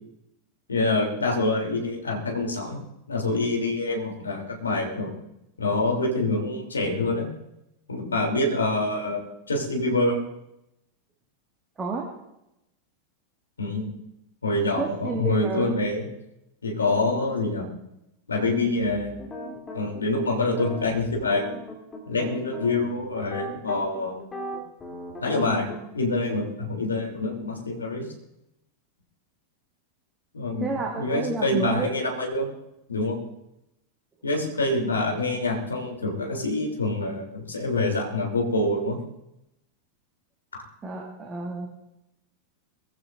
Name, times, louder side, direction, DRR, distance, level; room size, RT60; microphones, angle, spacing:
voice 1, 0.7-2.8 3.1-5.1 5.6-7.3 7.9-10.2 13.6-13.9 14.4-16.1 16.6-17.7 18.3-19.1 19.7-21.5 22.0-24.2 25.2-28.1 30.3-32.5 32.9-33.2 34.2-39.0 40.5-40.6, left 2 dB, 75° left, 1 dB, 3.3 m, -26 dB
voice 2, 11.8-12.1 14.8-15.8 30.6-32.0 40.8-41.7, right 3 dB, 20° right, 0 dB, 2.0 m, -30 dB
sound 1, 18.4-25.8, equal, 15° left, 3.2 m, -38 dB
22.5 x 15.5 x 2.7 m, 0.86 s
figure-of-eight pair, 90°, 0 cm